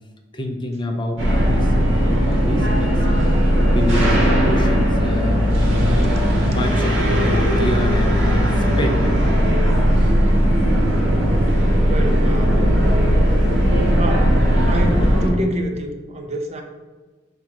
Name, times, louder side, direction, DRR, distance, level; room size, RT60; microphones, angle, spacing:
voice 1, 0.3-3.3 3.7-9.4, left 1 dB, 25° left, 3 dB, 0.5 m, -27 dB
sound 1, 1.2-15.3, equal, 80° right, 1.0 m, -17 dB
voice 2, 11.9-12.6 14.0-14.4 14.7-16.6, right 1 dB, 35° right, 4 dB, 0.5 m, -27 dB
3.5 x 2.9 x 4.7 m, 1.3 s
head